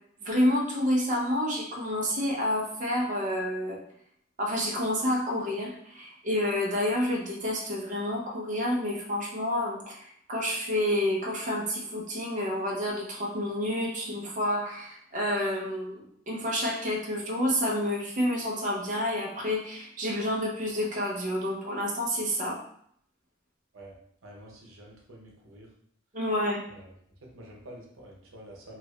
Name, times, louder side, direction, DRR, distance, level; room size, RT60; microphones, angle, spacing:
voice 1, 0.2-3.8 4.4-22.6 26.1-26.6, left 1 dB, 40° right, -2 dB, 0.7 m, -29 dB
voice 2, 24.2-25.7 26.7-26.9 27.2-28.8, right 1 dB, 85° right, -1 dB, 0.8 m, -48 dB
2.9 x 2.5 x 3.1 m, 0.66 s
head